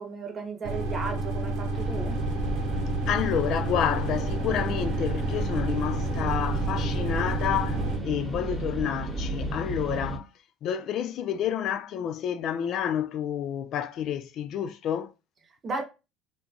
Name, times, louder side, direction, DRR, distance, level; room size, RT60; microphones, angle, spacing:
voice 1, 0.0-2.2 15.6-15.8, right 4 dB, 40° right, 0.9 m, -34 dB
sound 1, 0.6-8.0, right 2 dB, 80° right, 0.7 m, -30 dB
sound 2, 1.7-10.2, right 2 dB, 5° right, 1.1 m, -33 dB
voice 2, 3.1-10.3 10.6-15.1, left 9 dB, 60° left, 0.3 m, -29 dB
2.8 x 2.2 x 2.7 m
supercardioid pair, 80°, 0 cm